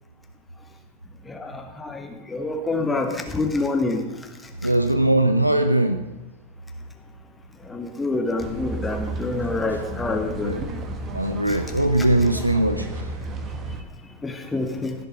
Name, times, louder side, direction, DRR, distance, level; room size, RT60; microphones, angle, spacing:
voice 1, 1.8-4.0 7.7-10.5 14.2-14.9, left 3 dB, 10° left, 4 dB, 1.2 m, -26 dB
voice 2, 4.6-6.0 10.4-10.6 11.1-12.9, right 1 dB, 85° right, 9 dB, 0.5 m, -20 dB
sound 1, 8.4-13.8, right 2 dB, 30° right, 1.3 m, -32 dB
15.5 x 6.9 x 5.1 m, 1.1 s
figure-of-eight pair, 90°, 0 cm